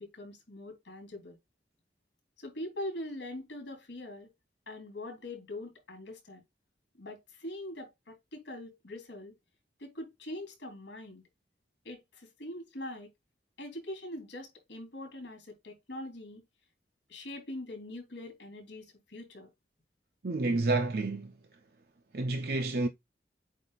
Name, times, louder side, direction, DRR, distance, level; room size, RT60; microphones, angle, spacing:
voice 1, 0.0-1.3 2.4-4.3 4.7-6.4 7.0-9.3 9.8-11.2 11.8-13.1 13.6-16.4 17.1-19.5, left 1 dB, 80° left, 3.4 m, -43 dB
voice 2, 20.2-21.4 22.1-22.9, right 2 dB, 60° right, 0.7 m, -29 dB
8.3 x 2.8 x 4.1 m
head